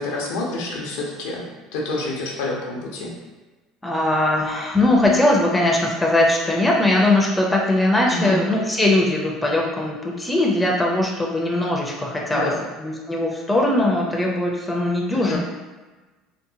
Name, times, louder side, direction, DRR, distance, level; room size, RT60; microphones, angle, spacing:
voice 1, 0.0-1.4 1.7-3.1 8.1-8.4 12.3-12.6 15.1-15.4, left 2 dB, 90° left, -2 dB, 0.6 m, -28 dB
voice 2, 3.8-12.5 12.8-15.4, left 1 dB, 5° left, -2 dB, 0.4 m, -20 dB
2.8 x 2.1 x 2.6 m, 1.2 s
cardioid pair, 125°, 0 cm